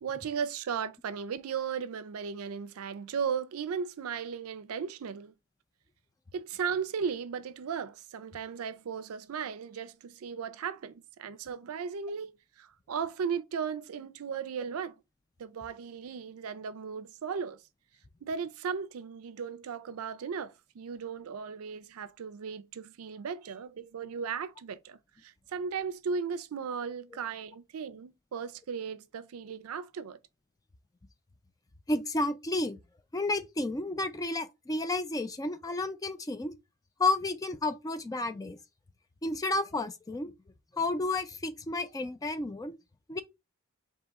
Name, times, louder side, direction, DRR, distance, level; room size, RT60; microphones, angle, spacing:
voice 1, 0.0-5.3 6.3-15.0 15.4-17.6 18.2-30.2, right 6 dB, 80° right, 0.4 m, -36 dB
voice 2, 31.9-32.8 33.1-36.5 37.0-38.6 39.2-40.3 40.7-42.7 43.1-43.2, left 2 dB, 15° left, 0.4 m, -31 dB
3.5 x 2.8 x 3.9 m
head